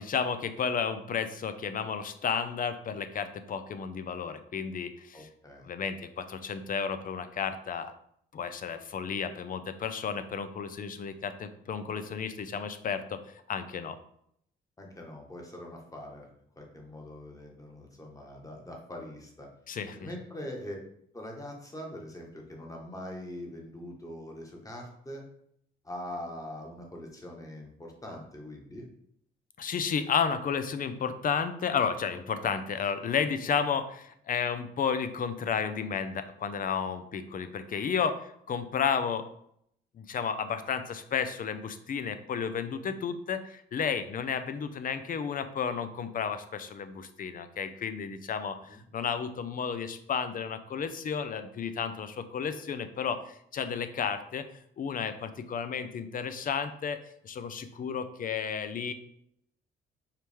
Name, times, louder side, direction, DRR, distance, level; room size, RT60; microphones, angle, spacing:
voice 1, 0.0-5.3 5.6-7.9 8.3-13.2 13.5-14.0 19.7-20.0 29.6-39.3 40.0-54.4 54.8-58.9, left 6 dB, 45° left, 10 dB, 0.5 m, -32 dB
voice 2, 5.1-5.7 14.8-16.3 16.6-19.5 19.9-20.8 21.1-25.2 25.8-28.9 48.7-48.8, left 1 dB, 15° left, 0 dB, 1.3 m, -42 dB
4.7 x 3.1 x 3.5 m, 0.70 s
cardioid pair, 90°, 20 cm